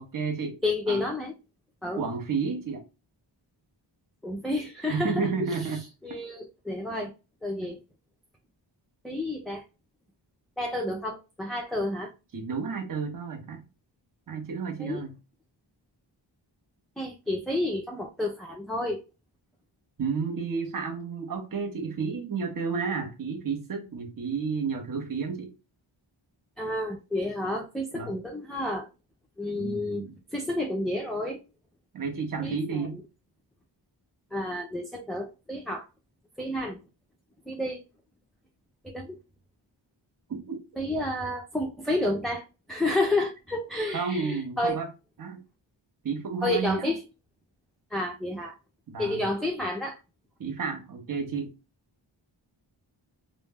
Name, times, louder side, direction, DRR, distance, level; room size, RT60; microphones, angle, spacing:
voice 1, 0.0-0.6 0.9-1.0 2.0-2.8 4.9-5.8 12.3-13.6 14.3-15.2 20.0-25.5 27.9-28.2 29.5-30.1 31.9-33.0 40.3-40.6 43.9-44.9 45.2-45.4 46.0-46.9 48.9-49.3 50.4-51.5, right 5 dB, 45° right, 0.7 m, -31 dB
voice 2, 0.6-1.3 1.8-2.1 4.2-5.3 5.6-5.7 6.0-7.1 7.4-7.8 9.0-9.6 10.6-12.1 14.8-15.0 17.0-19.0 26.6-28.9 29.4-30.1 30.3-31.4 32.4-33.0 34.3-35.9 36.4-36.8 37.5-37.8 38.8-39.2 40.8-44.8 46.4-47.0 47.9-48.6 49.0-50.0, left 1 dB, ahead, 0.3 m, -30 dB
2.1 x 2.0 x 3.3 m
wide cardioid pair, 85°, 48 cm